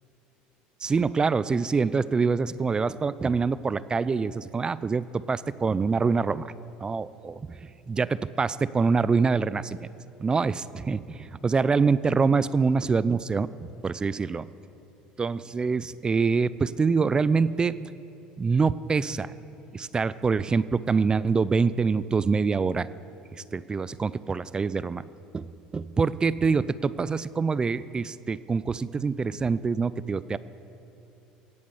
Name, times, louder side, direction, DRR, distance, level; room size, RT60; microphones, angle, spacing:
voice 1, 0.8-6.5 6.8-9.9 10.2-13.5 13.8-14.4 15.2-17.8 18.4-19.3 19.7-22.9 23.3-25.0 25.3-25.5 25.7-30.4, right 5 dB, 25° right, 17 dB, 0.4 m, -25 dB
17.5 x 8.5 x 7.0 m, 2.9 s
supercardioid pair, 95°, 4 cm